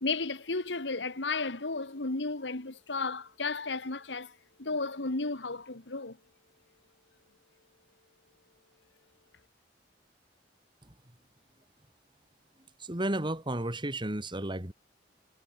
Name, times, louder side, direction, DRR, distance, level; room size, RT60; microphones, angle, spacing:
voice 1, 0.0-6.2, left 3 dB, 90° left, 1.9 m, -33 dB
voice 2, 12.8-14.7, right 1 dB, 25° right, 2.7 m, -32 dB
head